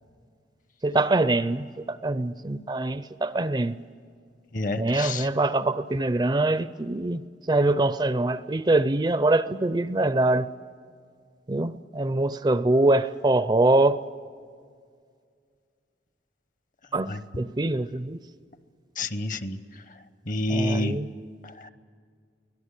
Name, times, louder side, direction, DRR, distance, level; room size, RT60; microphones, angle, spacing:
voice 1, 0.8-3.8 4.8-7.2 7.5-10.5 11.5-14.0 16.9-18.2 20.5-21.1, right 2 dB, 25° right, 14 dB, 0.5 m, -24 dB
voice 2, 4.5-5.3 17.1-17.2 19.0-19.6 20.3-21.0 21.4-21.7, left 2 dB, 45° left, 12 dB, 1.0 m, -28 dB
24.0 x 17.5 x 8.3 m, 2.1 s
head